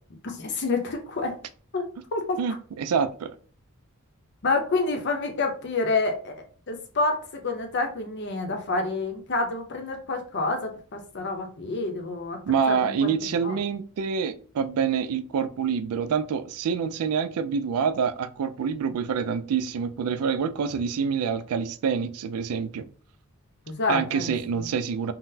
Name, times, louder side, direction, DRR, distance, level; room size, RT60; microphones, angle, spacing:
voice 1, 0.2-1.4 1.7-1.9 2.1-2.4 4.4-12.4 12.7-13.1 13.4-13.6 23.7-24.7, left 3 dB, 50° left, 0.7 m, -28 dB
voice 2, 2.4-3.3 12.5-22.9 23.9-25.1, right 6 dB, 85° right, 0.3 m, -26 dB
3.8 x 2.0 x 2.6 m
head